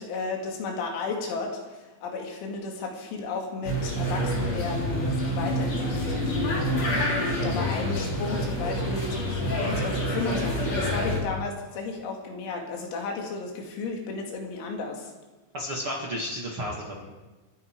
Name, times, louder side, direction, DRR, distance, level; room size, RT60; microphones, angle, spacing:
voice 1, 0.0-15.1, left 4 dB, 85° left, 1 dB, 4.6 m, -34 dB
sound 1, 3.6-11.2, equal, 35° left, 4.3 m, -27 dB
voice 2, 15.5-17.1, equal, 45° right, -3 dB, 1.8 m, -33 dB
28.5 x 9.8 x 4.7 m, 1.2 s
omnidirectional pair, 5.4 m